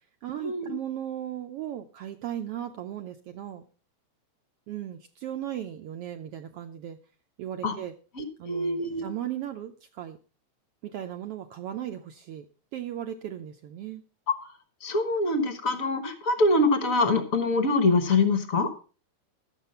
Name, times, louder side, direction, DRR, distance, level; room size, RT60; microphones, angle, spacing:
voice 1, 0.2-3.7 4.7-7.0 7.4-7.9 8.4-10.2 10.8-12.5 12.7-14.0, right 11 dB, 80° right, 6 dB, 1.3 m, -36 dB
voice 2, 8.2-9.1 14.8-18.7, left 2 dB, 65° left, 9 dB, 0.8 m, -24 dB
12.0 x 8.2 x 5.4 m, 0.37 s
omnidirectional pair, 3.4 m